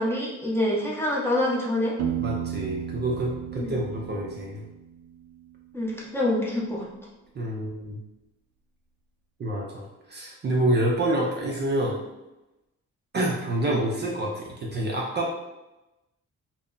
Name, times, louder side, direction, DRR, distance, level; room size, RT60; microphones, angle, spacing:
voice 1, 0.0-1.9 3.6-3.8 5.7-6.9, left 1 dB, 10° left, -5 dB, 0.7 m, -26 dB
Piano, 2.0-5.7, right 9 dB, 90° right, 0.5 m, -34 dB
voice 2, 2.2-4.6 7.4-8.0 9.4-12.0 13.1-15.3, right 1 dB, 35° right, -2 dB, 0.5 m, -27 dB
2.1 x 2.0 x 3.7 m, 0.98 s
cardioid pair, 90°, 30 cm